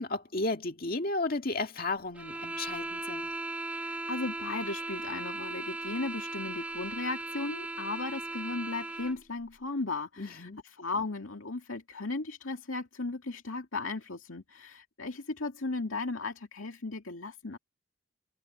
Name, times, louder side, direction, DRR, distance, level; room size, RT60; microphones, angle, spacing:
voice 1, 0.0-3.3 10.2-10.6, left 2 dB, 45° left, 2.0 m, -33 dB
sound 1, 2.1-9.2, right 2 dB, 5° right, 0.9 m, -37 dB
voice 2, 3.7-17.6, left 3 dB, 75° left, 2.3 m, -36 dB
head